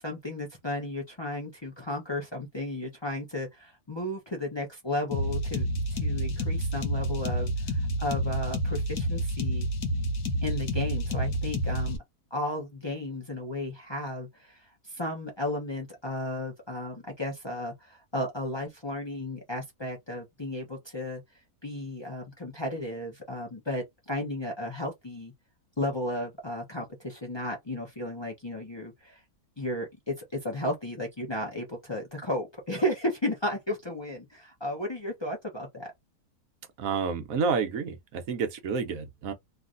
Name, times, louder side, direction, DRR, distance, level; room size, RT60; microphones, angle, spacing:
voice 1, 0.0-9.7 10.4-12.0 12.3-21.2 21.6-25.3 25.8-29.2 29.6-35.9, left 1 dB, 35° left, 0.4 m, -34 dB
sound 1, 5.1-12.0, equal, 75° left, 1.3 m, -29 dB
voice 2, 36.8-39.3, right 5 dB, 65° right, 1.1 m, -29 dB
3.1 x 2.5 x 2.5 m
omnidirectional pair, 1.7 m